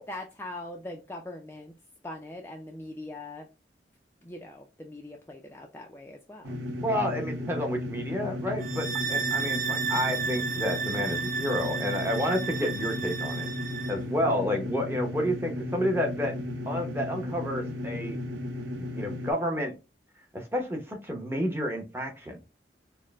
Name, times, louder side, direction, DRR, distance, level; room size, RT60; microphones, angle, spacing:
voice 1, 0.0-1.7 2.0-3.5 4.2-6.6, left 1 dB, 15° left, 1 dB, 0.4 m, -41 dB
sound 1, 6.4-19.3, left 1 dB, 85° right, 0.7 m, -35 dB
voice 2, 6.8-13.5 13.9-16.4 16.7-18.2 18.8-19.7 20.3-22.4, equal, 15° right, 2 dB, 0.8 m, -30 dB
sound 2, 8.6-14.0, right 6 dB, 45° right, 0.5 m, -32 dB
4.3 x 2.1 x 3.4 m, 0.28 s
head